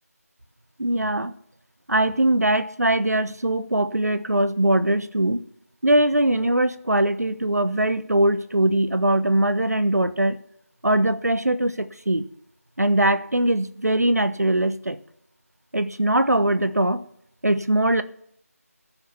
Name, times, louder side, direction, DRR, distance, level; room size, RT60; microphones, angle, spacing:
voice 1, 0.8-1.3 1.9-5.4 5.8-10.4 10.8-12.3 12.8-15.0 15.7-17.0 17.4-18.0, right 1 dB, 80° right, 13 dB, 1.0 m, -21 dB
15.0 x 6.9 x 5.5 m, 0.72 s
figure-of-eight pair, 170°, 8 cm